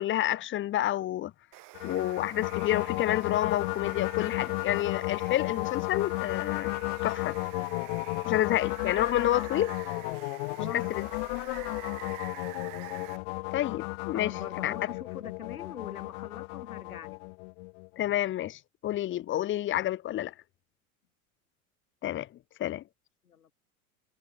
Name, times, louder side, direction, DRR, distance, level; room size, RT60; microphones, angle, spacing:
voice 1, 0.0-1.3 1.8-6.7 7.0-7.4 8.2-9.7 10.7-11.0 13.5-14.3 14.6-14.7 18.0-20.3 22.0-22.3 22.6-22.8, left 13 dB, 30° left, 0.8 m, -29 dB
Water, 1.5-13.2, right 24 dB, 45° right, 1.8 m, -48 dB
sound 1, 1.7-18.0, left 28 dB, 55° left, 1.3 m, -34 dB
voice 2, 10.6-11.0 14.1-17.2 23.3-23.5, left 8 dB, 90° left, 0.7 m, -42 dB
figure-of-eight pair, 80°, 42 cm